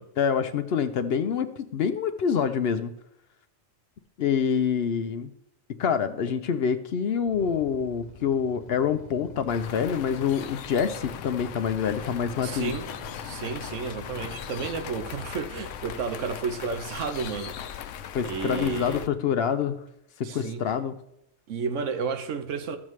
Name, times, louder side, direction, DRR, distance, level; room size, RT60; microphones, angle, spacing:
voice 1, 0.2-2.9 4.2-5.3 5.8-12.8 18.1-19.8 20.2-20.9, left 7 dB, 65° left, 0.7 m, -26 dB
Motorcycle / Idling, 7.3-17.2, left 2 dB, 35° left, 1.2 m, -46 dB
sound 1, 9.5-19.1, left 9 dB, 90° left, 0.9 m, -39 dB
voice 2, 12.4-12.9 13.2-17.6 18.2-19.1 20.2-20.6 21.5-22.8, right 5 dB, 80° right, 1.2 m, -32 dB
13.5 x 7.3 x 3.1 m
omnidirectional pair, 1.3 m